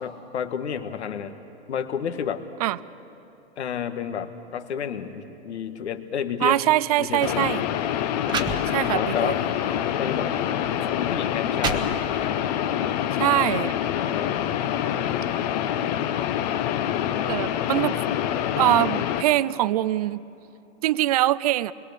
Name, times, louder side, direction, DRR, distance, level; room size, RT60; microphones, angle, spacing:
voice 1, 0.0-1.4 1.7-2.4 3.6-6.6 7.0-7.5 8.3-8.6 8.9-9.4 10.0-10.3 11.0-11.9 13.9-14.4 14.8-15.2, left 8 dB, 75° left, 8 dB, 1.7 m, -31 dB
voice 2, 6.4-7.6 8.7-9.3 13.1-13.7 17.3-18.0 18.6-20.2 20.8-21.7, right 15 dB, 35° right, 19 dB, 0.4 m, -23 dB
sound 1, 7.0-7.2 7.9-8.0 8.2-9.2 9.7-9.9 10.7-10.8 11.3-12.4, right 4 dB, 15° right, 1.0 m, -31 dB
sound 2, 7.2-19.2, left 10 dB, 40° left, 0.9 m, -26 dB
27.0 x 21.5 x 6.8 m, 2.9 s
hypercardioid pair, 145°, 34 cm